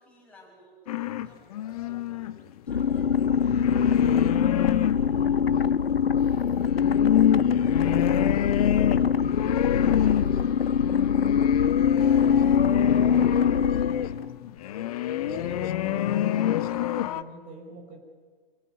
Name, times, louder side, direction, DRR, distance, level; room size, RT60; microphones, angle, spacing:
voice 1, 0.0-2.4 2.6-3.2 3.7-6.4 7.3-12.3 12.8-13.9, right 1 dB, 5° left, -3 dB, 6.9 m, -52 dB
sound 1, 0.9-5.3 6.0-17.2, left 12 dB, 40° left, 0.9 m, -28 dB
sound 2, 2.7-14.4, left 7 dB, 75° left, 0.6 m, -23 dB
voice 2, 4.4-4.8 9.2-9.9 12.3-12.6 15.3-18.0, right 2 dB, 25° right, 3 dB, 5.4 m, -44 dB
26.0 x 14.0 x 9.3 m, 1.5 s
figure-of-eight pair, 115°, 30 cm